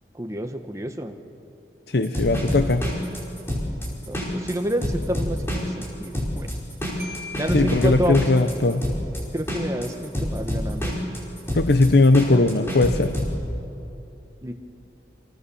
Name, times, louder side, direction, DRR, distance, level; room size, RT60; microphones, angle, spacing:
voice 1, 0.1-1.2 4.1-6.5 7.4-8.3 9.3-10.9 14.4-14.5, right 1 dB, 15° right, 5 dB, 1.3 m, -29 dB
voice 2, 1.9-2.9 7.5-8.8 11.5-13.1, left 2 dB, 60° left, 9 dB, 0.8 m, -19 dB
sound 1, 2.0-13.3, equal, 15° left, 4.9 m, -27 dB
Marimba xylophone, 7.0-8.7, left 4 dB, 50° right, 2.9 m, -41 dB
29.5 x 25.0 x 7.1 m, 2.9 s
head